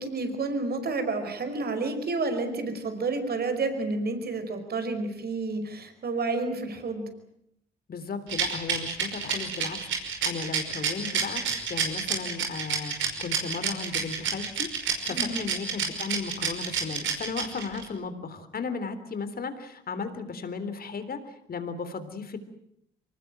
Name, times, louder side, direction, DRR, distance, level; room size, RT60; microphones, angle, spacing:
voice 1, 0.0-7.1 15.1-15.4, right 3 dB, 50° right, 8 dB, 5.3 m, -30 dB
voice 2, 7.9-22.4, left 4 dB, 45° left, 11 dB, 3.6 m, -35 dB
Rattle, 8.3-17.8, right 7 dB, 70° right, 5.5 m, -28 dB
24.0 x 19.5 x 9.2 m, 0.75 s
supercardioid pair, 60°, 21 cm